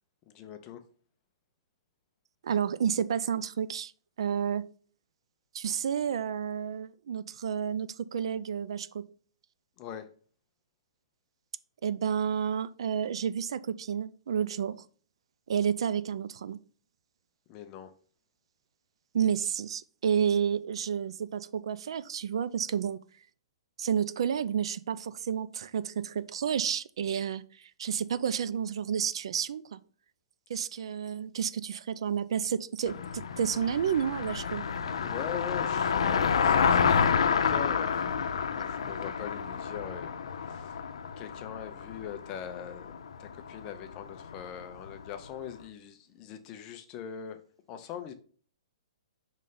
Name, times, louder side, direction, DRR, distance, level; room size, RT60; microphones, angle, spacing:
voice 1, 0.3-0.8 9.8-10.1 17.5-17.9 35.0-40.1 40.5-40.7 41.2-47.4 47.7-48.1, left 9 dB, 25° left, 0.6 m, -42 dB
voice 2, 2.4-3.9 4.2-4.7 5.5-9.1 11.8-14.8 15.5-16.6 19.1-23.0 23.8-29.8 30.5-34.7, right 8 dB, 65° right, 0.4 m, -30 dB
Car passing by, 32.9-45.2, left 6 dB, 80° left, 0.6 m, -29 dB
5.3 x 3.2 x 5.5 m
hypercardioid pair, 165°, 3 cm